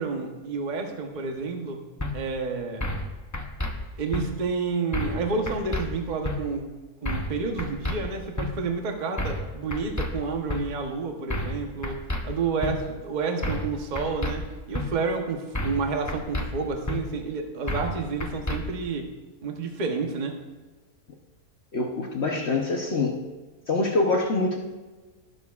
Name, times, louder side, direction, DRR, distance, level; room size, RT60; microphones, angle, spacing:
voice 1, 0.0-1.8 2.1-2.8 4.0-6.6 7.0-12.0 12.2-19.1 19.4-20.4, right 4 dB, 35° right, 3 dB, 0.9 m, -30 dB
sound 1, 2.0-2.1 2.8-3.1 3.3-3.7 4.1-4.2 4.9-5.2 5.5-5.8 6.2-6.4 7.0-7.3 7.6-8.0 8.4-8.5 9.2-9.4 9.7-10.1 10.5-10.6 11.3-11.6 11.8-12.2 12.6-12.7 13.4-13.7 14.0-14.3 14.7-14.9 15.5-15.8 16.1-16.5 16.9-17.0 17.7-17.9 18.2-18.6, left 1 dB, 25° left, 0.4 m, -29 dB
voice 2, 21.7-23.2 23.7-24.6, left 3 dB, 50° left, 1 dB, 1.0 m, -25 dB
20.0 x 6.9 x 2.4 m, 1.2 s
omnidirectional pair, 1.6 m